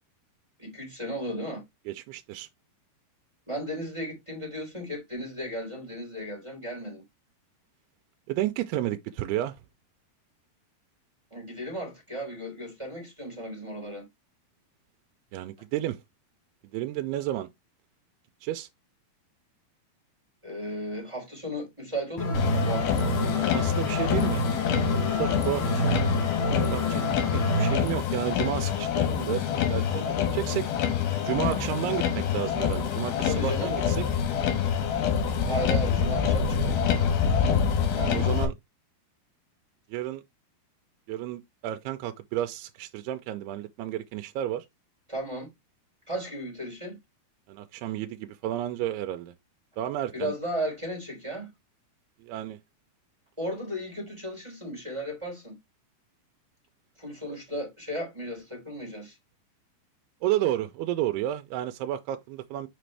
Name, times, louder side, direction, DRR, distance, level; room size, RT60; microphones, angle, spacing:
voice 1, 0.6-1.6 3.5-7.0 11.3-14.0 20.4-23.2 33.2-33.7 35.4-36.8 38.0-38.2 45.1-45.5 46.1-47.0 50.1-51.5 53.4-55.6 57.0-59.2, equal, 10° right, 3.2 m, -35 dB
voice 2, 1.9-2.5 8.3-9.6 15.3-16.0 16.7-17.5 18.4-18.7 23.5-24.4 24.9-26.0 26.7-27.0 27.6-30.7 31.2-34.0 37.9-38.5 39.9-40.2 41.1-44.7 47.5-49.3 49.8-50.3 52.2-52.6 57.3-57.4 60.2-62.7, right 13 dB, 90° right, 2.6 m, -31 dB
sound 1, 22.2-27.7, equal, 45° left, 2.0 m, -28 dB
Motor vehicle (road), 22.3-38.5, left 8 dB, 80° left, 3.2 m, -26 dB
6.0 x 5.1 x 3.2 m
omnidirectional pair, 4.5 m